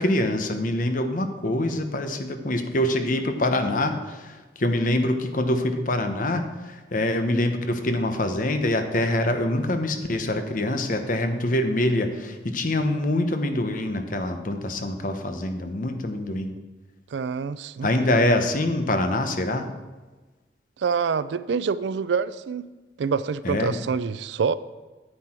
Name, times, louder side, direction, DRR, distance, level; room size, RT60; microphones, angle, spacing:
voice 1, 0.0-16.5 17.8-19.7 23.4-23.7, left 1 dB, 50° left, 7 dB, 0.9 m, -25 dB
voice 2, 17.1-17.9 20.8-22.7 23.0-24.5, right 6 dB, 80° right, 16 dB, 0.4 m, -26 dB
9.7 x 8.3 x 4.4 m, 1.2 s
head